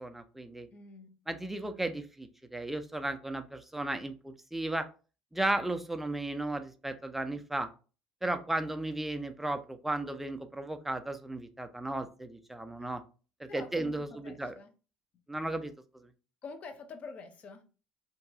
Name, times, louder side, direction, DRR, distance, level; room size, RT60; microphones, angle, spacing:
voice 1, 0.0-0.7 1.3-4.9 5.3-7.7 8.2-13.0 13.4-14.5 15.3-16.1, right 2 dB, 5° right, 0.4 m, -35 dB
voice 2, 0.7-1.2 12.8-12.9 13.5-14.7 16.4-17.6, left 4 dB, 45° left, 0.6 m, -46 dB
2.7 x 2.2 x 2.6 m
hypercardioid pair, 75°, 3 cm